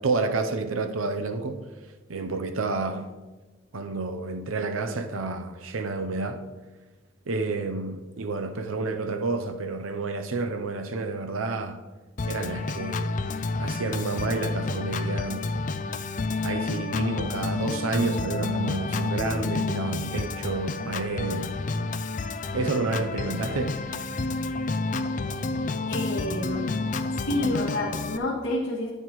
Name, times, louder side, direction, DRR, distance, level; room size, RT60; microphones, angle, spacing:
voice 1, 0.0-1.6 2.1-3.1 3.7-6.4 7.3-11.8 12.2-13.2 13.6-15.5 16.4-21.6 22.5-23.8, right 3 dB, 80° right, 0.7 m, -30 dB
Organ, 12.2-28.2, left 3 dB, 40° left, 0.4 m, -30 dB
voice 2, 25.9-26.7 27.1-28.9, left 1 dB, 80° left, 2.1 m, -29 dB
11.5 x 9.9 x 3.1 m
head